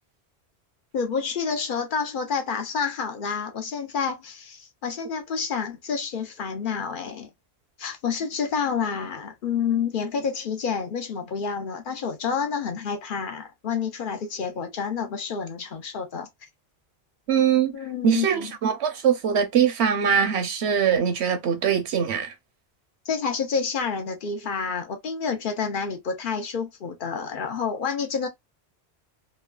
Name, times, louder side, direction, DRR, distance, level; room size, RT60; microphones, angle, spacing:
voice 1, 0.9-7.3 7.8-16.3 17.7-18.5 23.0-28.3, left 6 dB, 55° left, 0.9 m, -29 dB
voice 2, 17.3-17.7 18.0-22.3, right 7 dB, 80° right, 1.0 m, -22 dB
3.1 x 2.2 x 2.3 m
omnidirectional pair, 1.1 m